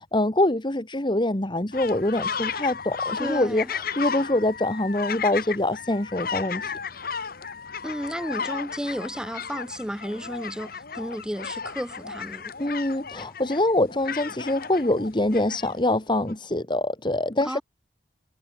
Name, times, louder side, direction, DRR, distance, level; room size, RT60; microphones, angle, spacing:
voice 1, 0.0-6.7 12.6-17.6, left 1 dB, 25° left, 1.7 m, -24 dB
sound 1, 1.7-15.8 16.3-16.4, left 6 dB, 55° left, 1.7 m, -34 dB
voice 2, 3.2-3.7 7.8-12.4 17.4-17.6, equal, 5° right, 6.5 m, -33 dB
head